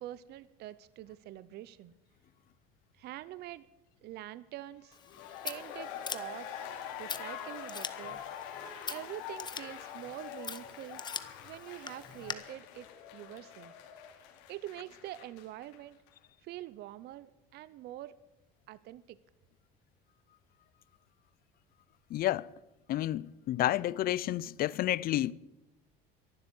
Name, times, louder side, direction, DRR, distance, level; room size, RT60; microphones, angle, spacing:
voice 1, 0.0-1.9 2.9-3.7 4.0-5.0 5.4-6.7 7.0-8.2 8.9-11.0 11.4-12.9 13.1-13.7 14.5-16.0 16.4-18.1 18.7-19.2, right 14 dB, 55° right, 0.7 m, -45 dB
sound 1, 4.9-15.8 16.1-16.2, left 9 dB, 80° left, 2.6 m, -45 dB
Scissors, 4.9-12.3, left 5 dB, 20° left, 1.1 m, -44 dB
voice 2, 22.1-22.5 22.9-25.3, left 14 dB, 50° left, 0.6 m, -30 dB
13.5 x 11.5 x 8.2 m
supercardioid pair, 110°, 20 cm